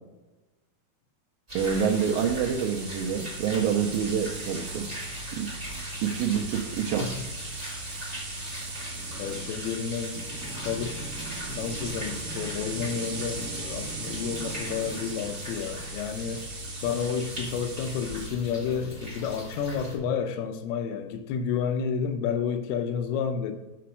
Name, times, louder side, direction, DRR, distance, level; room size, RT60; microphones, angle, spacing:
sound 1, 1.5-20.0, equal, 20° right, 1.1 m, -38 dB
voice 1, 1.5-4.9 5.3-5.5 6.0-7.1, right 7 dB, 80° right, 2 dB, 2.3 m, -27 dB
sound 2, 1.6-18.3, right 3 dB, 50° right, 1.6 m, -40 dB
voice 2, 9.2-16.5 16.8-23.5, left 7 dB, 80° left, 7 dB, 2.6 m, -31 dB
6.0 x 5.8 x 6.2 m, 1.1 s
omnidirectional pair, 4.6 m